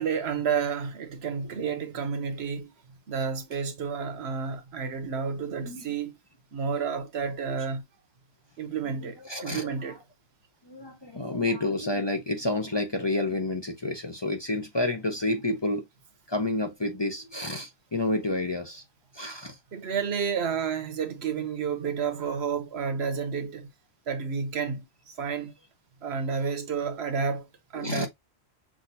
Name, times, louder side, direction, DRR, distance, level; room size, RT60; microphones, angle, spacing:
voice 1, 0.0-2.7 3.1-6.2 6.5-7.8 8.6-10.0 19.7-23.7 24.1-25.5 26.0-28.1, right 6 dB, 70° right, 1.1 m, -30 dB
voice 2, 9.0-10.0 10.6-15.9 16.3-18.8 19.1-19.6 27.7-28.1, left 2 dB, 30° left, 0.7 m, -30 dB
6.2 x 2.6 x 2.7 m
omnidirectional pair, 1.1 m